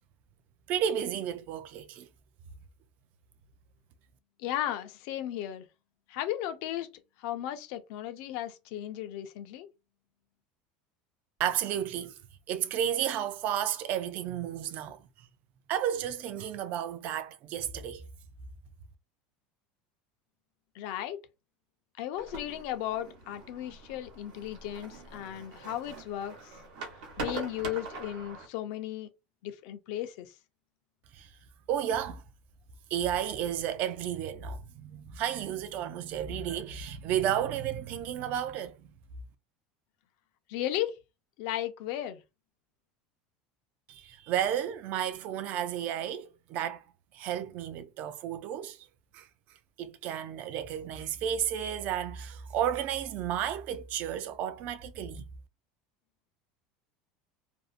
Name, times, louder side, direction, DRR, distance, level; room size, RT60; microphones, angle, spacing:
voice 1, 0.7-2.1 11.4-12.1 12.5-15.0 15.7-18.1 31.1-31.3 31.7-32.2 32.9-38.7 43.9-46.8 47.1-48.8 49.1-49.3 49.8-55.2, right 10 dB, 45° right, 0.4 m, -32 dB
voice 2, 4.4-5.7 6.1-6.9 7.2-9.7 20.7-21.2 22.0-26.5 27.2-29.1 29.4-30.3 40.5-40.9 41.4-42.2, left 12 dB, 60° left, 0.5 m, -35 dB
sound 1, 22.2-28.5, right 3 dB, 85° right, 1.0 m, -43 dB
2.6 x 2.1 x 2.5 m
supercardioid pair, 155°, 4 cm